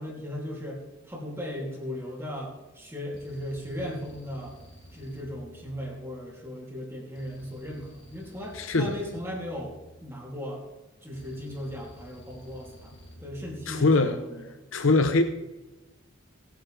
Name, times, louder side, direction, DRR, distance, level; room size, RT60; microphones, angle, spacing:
voice 1, 0.0-4.6 4.9-9.7 10.0-10.6 11.0-12.9 13.2-14.6, equal, 10° right, -2 dB, 2.8 m, -37 dB
sound 1, 3.1-6.4 7.2-10.4 11.1-14.1, equal, 60° left, 2.7 m, -51 dB
voice 2, 8.5-9.0 13.7-14.2 14.7-15.2, left 3 dB, 80° left, 8 dB, 0.8 m, -22 dB
19.0 x 9.6 x 3.4 m, 1.1 s
head